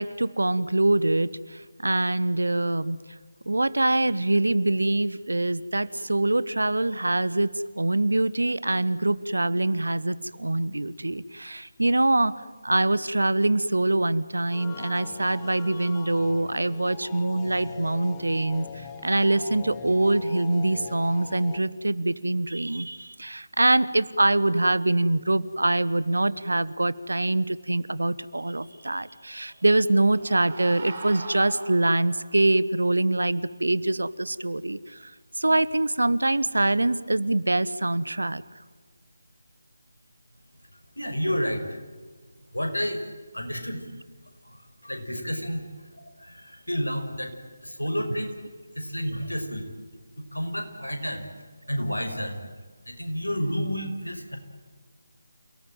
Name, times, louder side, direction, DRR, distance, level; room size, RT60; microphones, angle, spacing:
voice 1, 0.0-3.0 3.5-12.3 12.6-35.1 35.4-38.4, right 2 dB, 65° right, 18 dB, 1.1 m, -24 dB
sound 1, 14.5-21.6, left 8 dB, 15° left, 1.3 m, -43 dB
sound 2, 29.5-32.4, right 3 dB, 35° right, 6.9 m, -41 dB
voice 2, 41.0-41.8 42.5-43.1 43.3-43.8 44.4-47.3 47.6-48.3 48.7-49.7 50.2-51.3 51.7-52.4 52.9-54.4, equal, 80° left, 5 dB, 5.7 m, -30 dB
28.5 x 18.5 x 9.0 m, 1.4 s
figure-of-eight pair, 155°, 0 cm